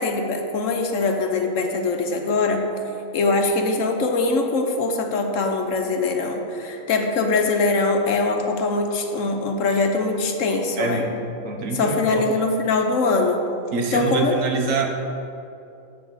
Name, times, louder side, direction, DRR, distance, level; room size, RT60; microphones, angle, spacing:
voice 1, 0.0-2.7 3.1-11.0 11.7-13.4 13.9-14.3, left 3 dB, 70° left, 4 dB, 1.2 m, -22 dB
voice 2, 10.8-11.1 11.4-12.3 13.7-14.9, right 4 dB, 70° right, 3 dB, 1.3 m, -25 dB
7.6 x 6.0 x 7.2 m, 2.6 s
omnidirectional pair, 1.4 m